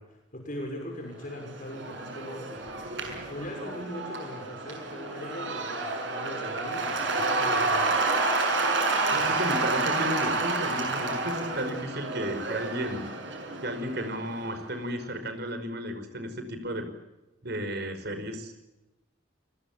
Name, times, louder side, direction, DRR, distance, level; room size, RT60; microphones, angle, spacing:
voice 1, 0.0-2.6 3.3-8.0, left 1 dB, 45° left, 2 dB, 6.4 m, -40 dB
Cheering / Applause / Crowd, 1.3-14.7, right 3 dB, 85° right, 7.1 m, -29 dB
voice 2, 9.1-13.0 13.6-16.9 17.4-18.5, equal, 60° right, 9 dB, 5.4 m, -33 dB
29.0 x 21.0 x 7.4 m, 1.0 s
head